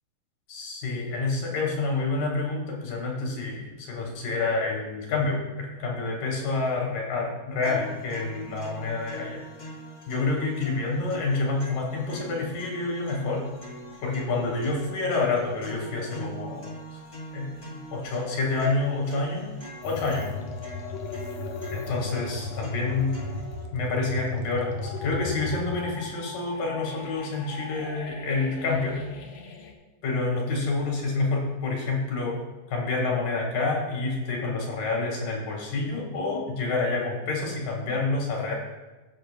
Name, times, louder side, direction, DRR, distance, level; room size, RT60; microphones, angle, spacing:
voice 1, 0.5-9.4 10.1-13.5 14.0-16.7 17.3-17.5 17.9-19.5 19.8-20.3 21.7-23.1 23.7-29.0 30.0-32.4 32.7-38.5, left 3 dB, 65° left, -1 dB, 3.3 m, -28 dB
sound 1, 7.6-23.6, right 1 dB, 20° left, 1.4 m, -42 dB
sound 2, 19.8-29.7, left 4 dB, 85° left, 1.5 m, -37 dB
17.5 x 7.7 x 2.2 m, 1.2 s
omnidirectional pair, 4.4 m